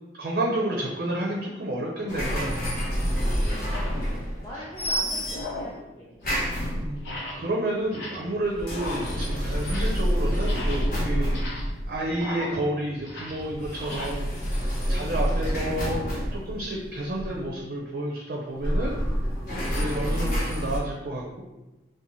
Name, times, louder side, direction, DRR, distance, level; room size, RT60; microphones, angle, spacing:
voice 1, 0.2-2.6 6.7-11.5 11.9-18.9 19.7-21.4, right 1 dB, 55° right, -2 dB, 0.4 m, -30 dB
sound 1, 2.0-2.2 2.9-3.0 3.5-4.0 4.4-4.8 5.2-5.8 6.1-6.6 7.0-7.5 7.8-8.4 8.7-10.1 10.3-14.0, left 2 dB, 85° left, 0.7 m, -38 dB
sound 2, 2.1-4.5 4.8-5.7 6.2-7.1 8.4-12.0 13.5-17.5 18.5-20.8, equal, 55° left, 0.7 m, -28 dB
voice 2, 3.4-4.1 4.4-6.2 14.8-15.2 19.4-19.7, equal, 15° left, -8 dB, 0.4 m, -42 dB
2.6 x 2.1 x 3.0 m, 1.0 s
head